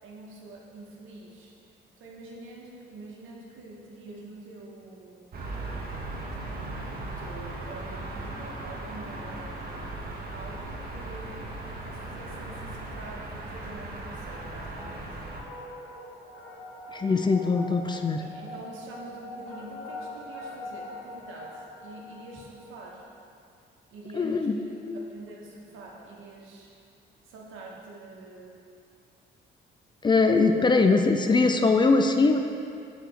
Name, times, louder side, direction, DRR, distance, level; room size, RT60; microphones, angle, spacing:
voice 1, 0.0-1.5 2.0-5.4 7.0-9.5 10.2-11.4 11.8-15.1 18.2-23.1 23.9-24.8 25.1-26.7 27.2-28.6, right 2 dB, 85° right, -2 dB, 1.0 m, -45 dB
sound 1, 5.3-15.4, right 2 dB, 50° right, 1.0 m, -37 dB
sound 2, 14.1-23.0, left 1 dB, 80° left, 1.3 m, -43 dB
voice 2, 16.9-18.2 24.1-24.5 24.8-25.0 30.0-32.5, left 3 dB, 25° left, 5 dB, 0.3 m, -22 dB
5.9 x 4.8 x 3.4 m, 2.5 s
cardioid pair, 90°, 20 cm